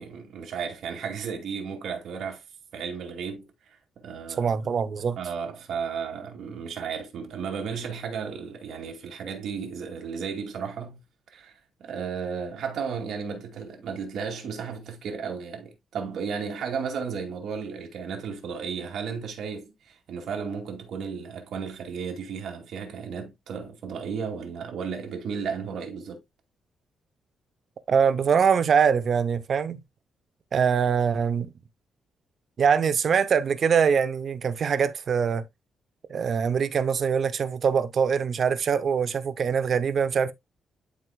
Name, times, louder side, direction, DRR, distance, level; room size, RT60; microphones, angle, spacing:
voice 1, 0.0-2.4 2.7-3.5 4.0-4.6 5.2-11.0 11.3-26.2, right 6 dB, 60° right, 2.2 m, -34 dB
voice 2, 4.4-5.2 27.9-29.8 30.5-31.5 32.6-35.4 36.1-40.3, right 6 dB, 40° right, 0.7 m, -23 dB
11.5 x 4.6 x 2.2 m
wide cardioid pair, 175°, 0 cm